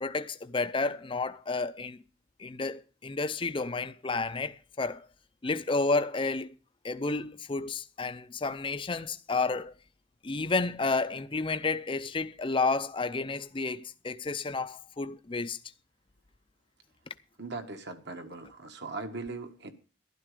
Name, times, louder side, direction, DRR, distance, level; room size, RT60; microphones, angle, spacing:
voice 1, 0.0-2.0 2.4-5.1 5.4-6.5 6.8-9.7 10.2-15.6, left 3 dB, 25° left, 0.5 m, -31 dB
voice 2, 17.4-19.7, right 3 dB, 55° right, 1.5 m, -39 dB
12.0 x 11.0 x 5.0 m
head